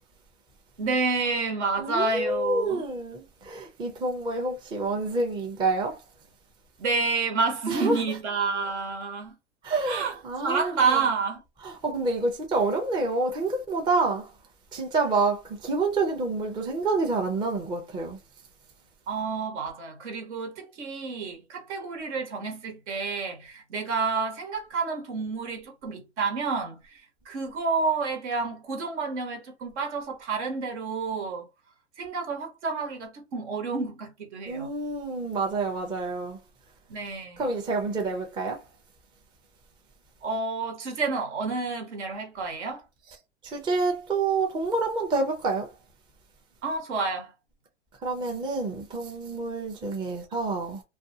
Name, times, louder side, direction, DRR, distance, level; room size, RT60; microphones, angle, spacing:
voice 1, 0.8-2.8 6.8-9.3 9.9-11.4 19.1-31.5 32.0-34.7 36.9-37.5 40.2-42.8 46.6-47.3, right 4 dB, 70° right, 1.3 m, -29 dB
voice 2, 1.8-6.0 7.7-8.0 9.6-11.0 11.6-14.3 14.7-18.2 34.5-36.4 37.4-38.6 43.4-45.7 48.0-50.8, right 3 dB, 15° right, 0.5 m, -28 dB
2.5 x 2.4 x 2.7 m
hypercardioid pair, 125°, 36 cm